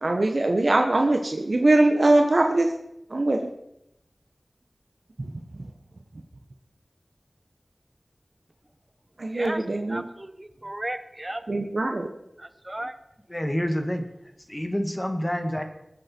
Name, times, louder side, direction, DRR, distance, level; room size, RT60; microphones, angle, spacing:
voice 1, 0.0-2.7 3.1-3.4 5.2-5.3 9.2-10.1 11.5-12.1, right 2 dB, 65° right, 3 dB, 1.2 m, -22 dB
voice 2, 9.3-9.6 9.9-11.4 12.4-12.9, right 1 dB, 30° right, 10 dB, 1.1 m, -35 dB
voice 3, 13.3-14.0 14.5-15.6, equal, 20° left, 5 dB, 1.9 m, -27 dB
21.0 x 8.3 x 4.6 m, 0.84 s
wide cardioid pair, 60°, 0 cm